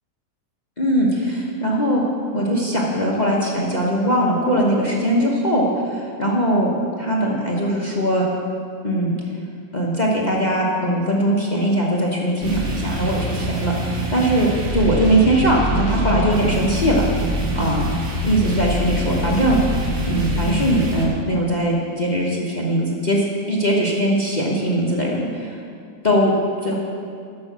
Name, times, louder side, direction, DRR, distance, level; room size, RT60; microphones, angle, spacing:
voice 1, 0.8-2.0 2.3-6.7 7.0-8.2 8.8-9.1 9.7-17.0 17.5-17.9 18.2-19.6 20.1-25.6 26.0-26.3 26.6-26.8, right 1 dB, 30° left, -4 dB, 1.0 m, -20 dB
sound 1, 12.4-21.1, right 1 dB, 80° right, 2.1 m, -24 dB
13.5 x 5.6 x 6.1 m, 2.3 s
omnidirectional pair, 2.1 m